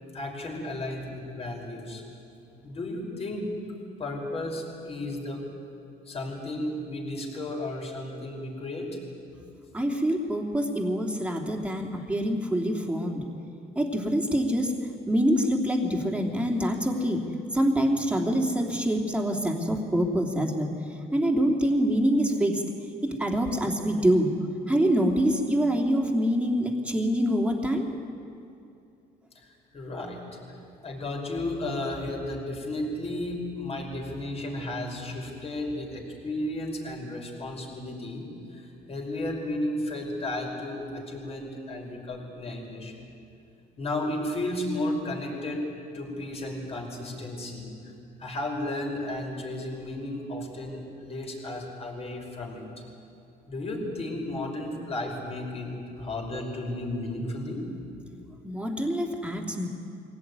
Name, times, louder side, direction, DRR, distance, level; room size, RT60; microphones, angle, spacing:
voice 1, 0.1-2.0 2.6-3.5 4.0-5.4 6.1-8.9 29.4-29.5 29.7-30.2 30.8-43.0 43.8-45.6 45.9-47.7 48.2-52.6 53.5-57.6, left 1 dB, 35° left, 0 dB, 5.3 m, -33 dB
voice 2, 9.7-13.3 13.7-14.7 15.1-17.2 17.5-20.7 21.1-22.6 23.0-24.3 24.7-27.9 58.4-59.7, equal, 5° right, 1 dB, 2.9 m, -25 dB
23.5 x 17.0 x 9.7 m, 2.6 s
cardioid pair, 110°, 17 cm